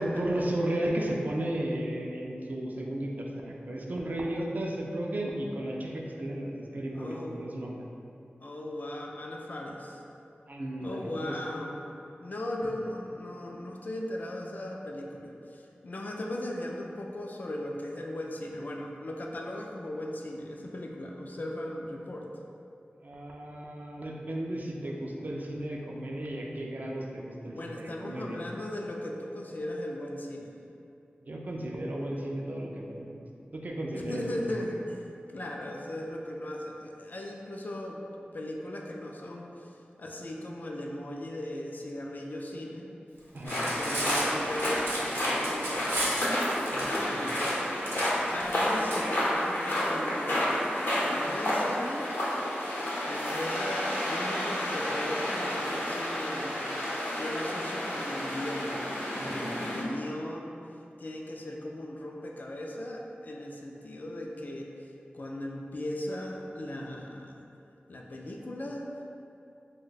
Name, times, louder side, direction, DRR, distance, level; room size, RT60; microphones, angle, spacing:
voice 1, 0.0-7.8 10.5-11.4 23.0-28.4 31.2-33.2 33.5-34.6 43.3-43.6 46.7-47.5 59.2-59.5, right 1 dB, 50° right, -1 dB, 0.4 m, -34 dB
voice 2, 6.9-7.4 8.4-10.0 10.8-11.8 12.2-22.3 27.5-30.5 33.9-38.0 38.3-39.7 40.0-42.9 43.8-46.2 46.8-47.6 48.3-50.6 51.0-52.1 53.1-56.6 57.1-58.8 59.2-60.6 61.0-64.7 65.1-67.4 67.9-68.9, left 1 dB, 50° left, 0 dB, 0.3 m, -38 dB
sound 1, 43.4-59.8, left 1 dB, 70° left, 0.7 m, -30 dB
Cutlery silverware, 43.4-49.0, right 1 dB, 85° right, 0.6 m, -34 dB
2.7 x 2.1 x 3.9 m, 2.7 s
wide cardioid pair, 75°, 4 cm